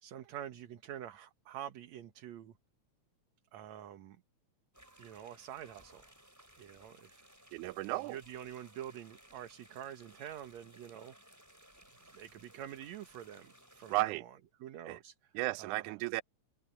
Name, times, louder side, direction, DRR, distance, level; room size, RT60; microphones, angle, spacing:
voice 1, 0.0-2.5 3.5-4.2 5.0-6.1 6.6-7.5 7.9-11.1 12.0-15.3 15.6-16.0, right 10 dB, 70° right, 2.4 m, -47 dB
sound 1, 4.7-14.0, right 1 dB, 5° right, 4.8 m, -60 dB
voice 2, 7.5-8.2 13.9-14.2 14.9-15.0 15.3-16.2, right 19 dB, 90° right, 2.0 m, -34 dB
open air
omnidirectional pair, 3.4 m